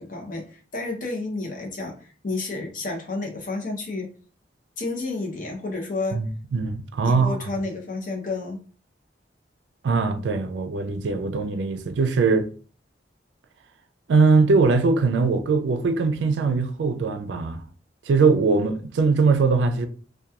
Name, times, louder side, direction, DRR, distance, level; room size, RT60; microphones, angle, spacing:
voice 1, 0.0-4.1 4.8-6.2 7.0-8.6, left 3 dB, 50° left, 0.7 m, -31 dB
voice 2, 6.1-7.4 9.8-12.5 14.1-17.6 18.1-19.9, right 4 dB, 80° right, 0.4 m, -21 dB
2.8 x 2.2 x 2.3 m
head